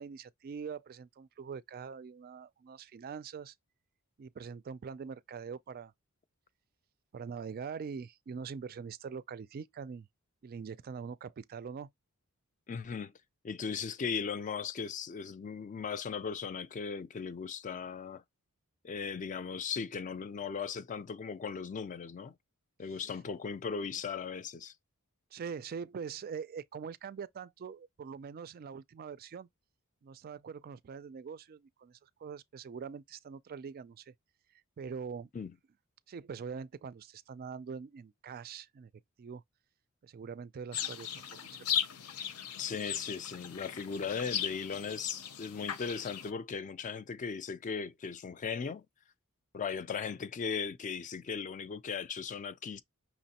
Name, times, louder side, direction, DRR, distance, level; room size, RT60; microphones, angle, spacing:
voice 1, 0.0-3.5 4.2-5.9 7.1-10.1 10.4-11.9 25.3-29.5 30.0-34.1 34.8-35.3 36.1-38.9 39.2-39.4 40.0-41.5, right 6 dB, 40° right, 0.3 m, -43 dB
voice 2, 12.7-13.1 13.4-18.2 18.8-22.3 22.8-24.7 35.3-35.5 42.6-48.8 49.5-52.8, left 6 dB, 35° left, 0.3 m, -37 dB
sound 1, 40.7-46.3, left 9 dB, 80° left, 0.7 m, -37 dB
5.7 x 3.1 x 2.8 m
head